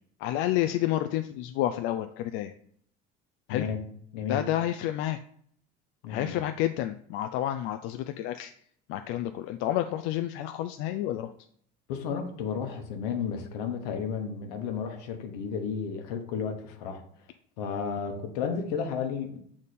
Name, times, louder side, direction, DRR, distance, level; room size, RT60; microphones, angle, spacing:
voice 1, 0.2-2.5 3.5-3.7 4.3-5.2 6.1-8.5 8.9-11.3, left 13 dB, 65° left, 0.4 m, -29 dB
voice 2, 3.5-3.8 4.1-4.5 6.0-6.4 11.9-17.0 17.6-19.4, left 6 dB, 85° left, 1.1 m, -32 dB
6.5 x 3.6 x 4.1 m
supercardioid pair, 105°, 20 cm